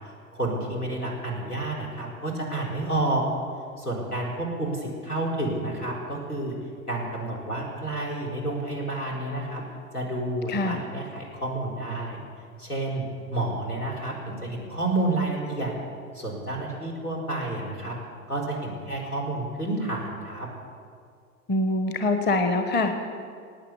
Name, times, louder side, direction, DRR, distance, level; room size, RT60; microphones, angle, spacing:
voice 1, 0.3-3.2 3.8-6.6 6.9-9.6 9.9-12.2 12.6-15.7 16.1-17.9 18.3-20.5, right 2 dB, 90° left, -2 dB, 4.5 m, -30 dB
voice 2, 10.5-10.8 21.5-22.9, left 2 dB, 25° left, 7 dB, 1.3 m, -24 dB
19.0 x 9.2 x 8.3 m, 2.2 s
figure-of-eight pair, 95°, 44 cm